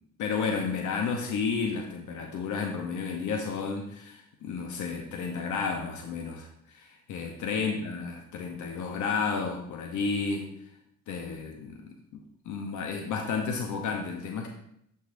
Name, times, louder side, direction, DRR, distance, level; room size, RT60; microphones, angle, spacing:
voice 1, 0.2-10.5 11.1-14.5, left 5 dB, 75° left, 2 dB, 0.9 m, -32 dB
12.0 x 4.0 x 2.6 m, 0.75 s
cardioid pair, 90°, 30 cm